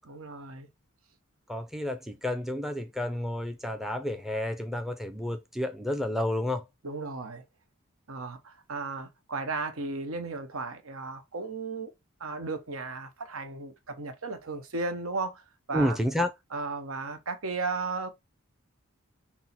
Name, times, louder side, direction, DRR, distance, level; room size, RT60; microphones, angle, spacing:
voice 1, 0.1-0.7 6.8-7.4 8.1-11.9 12.2-15.4 15.7-16.0 16.5-18.1, right 3 dB, 85° right, 0.9 m, -35 dB
voice 2, 1.5-6.6 15.7-16.3, left 1 dB, ahead, 0.4 m, -30 dB
6.1 x 2.1 x 4.1 m
head